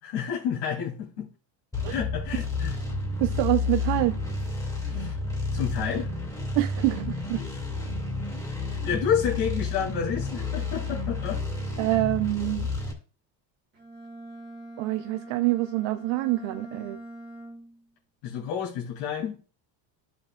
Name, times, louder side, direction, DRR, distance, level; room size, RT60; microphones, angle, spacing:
voice 1, 0.0-1.3 1.9-2.8 4.9-5.1 5.5-6.1 8.8-11.4 18.2-19.4, left 8 dB, 80° left, 2.7 m, -29 dB
sound 1, 1.7-12.9, left 3 dB, 10° left, 2.2 m, -31 dB
voice 2, 3.2-4.2 6.6-7.4 11.8-12.7 14.8-17.0, right 18 dB, 70° right, 0.6 m, -26 dB
Bowed string instrument, 13.7-17.9, right 1 dB, 20° right, 1.8 m, -43 dB
12.0 x 6.3 x 2.2 m
cardioid pair, 155°, 47 cm